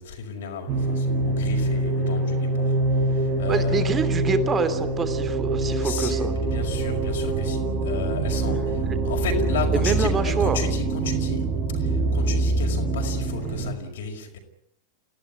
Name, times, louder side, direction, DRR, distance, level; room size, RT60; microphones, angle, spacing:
voice 1, 0.0-2.8 3.0-4.0 5.6-14.4, left 5 dB, 60° left, 3 dB, 5.5 m, -34 dB
sound 1, 0.7-13.7, right 2 dB, 35° right, 5.0 m, -24 dB
voice 2, 3.5-6.3 8.8-9.0 9.7-10.6, right 5 dB, 20° right, 11 dB, 2.9 m, -26 dB
29.5 x 16.5 x 9.9 m, 0.71 s
figure-of-eight pair, 90°, 0 cm